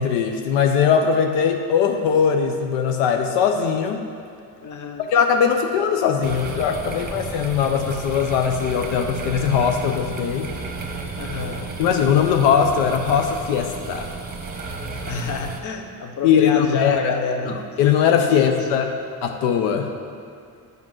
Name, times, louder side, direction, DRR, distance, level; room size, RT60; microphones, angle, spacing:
voice 1, 0.0-4.0 5.1-10.5 11.8-14.1 16.2-17.2 17.5-18.9 19.2-19.9, left 7 dB, 90° left, 5 dB, 0.7 m, -20 dB
voice 2, 4.6-5.1 11.2-11.8 15.1-17.6 18.3-18.9, left 5 dB, 45° left, 5 dB, 0.9 m, -28 dB
sound 1, 6.2-15.6, right 3 dB, 20° right, 1.1 m, -33 dB
7.5 x 5.3 x 6.1 m, 2.4 s
supercardioid pair, 85°, 40 cm